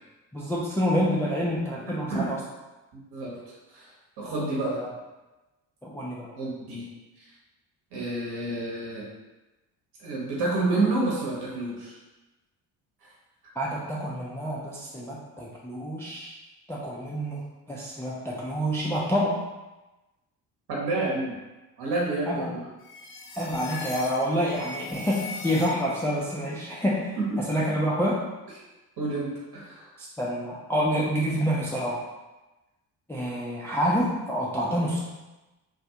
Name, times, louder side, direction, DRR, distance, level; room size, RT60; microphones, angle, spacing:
voice 1, 0.3-2.4 4.8-4.9 5.8-6.3 13.6-16.3 16.7-17.4 17.7-19.4 22.3-22.5 23.4-27.1 27.5-28.2 30.0-32.0 33.1-35.0, equal, 5° left, -5 dB, 0.3 m, -27 dB
voice 2, 1.8-2.3 2.9-3.4 3.7-4.8 6.3-6.9 7.2-7.3 7.9-9.1 10.0-12.0 13.0-13.1 20.7-21.3 21.8-22.7 27.2-27.4 29.0-29.9, right 2 dB, 50° right, -5 dB, 1.0 m, -29 dB
sound 1, 22.8-26.2, left 3 dB, 50° left, 0.7 m, -40 dB
2.3 x 2.3 x 2.7 m, 1.1 s
hypercardioid pair, 50°, 49 cm